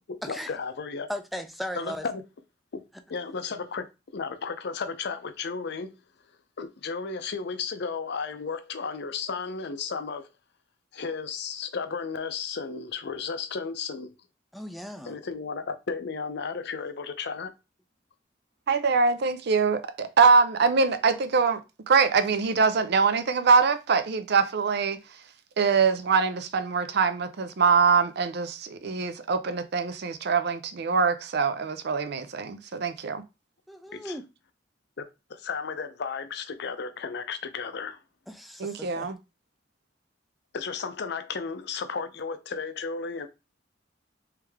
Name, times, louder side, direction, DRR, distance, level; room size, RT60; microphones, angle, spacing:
voice 1, 0.1-1.1 1.7-2.2 3.1-3.9 4.1-6.0 6.6-10.3 10.9-14.1 15.0-17.5 33.9-34.2 35.0-35.1 35.3-38.0 40.5-43.3, left 5 dB, 60° left, 0.6 m, -34 dB
voice 2, 1.1-2.0 14.5-15.2 33.7-34.2 38.3-39.1, equal, ahead, 0.4 m, -37 dB
voice 3, 18.7-21.6 21.9-25.0 25.6-33.2 38.6-39.2, right 5 dB, 60° right, 0.5 m, -23 dB
3.4 x 3.2 x 3.4 m
head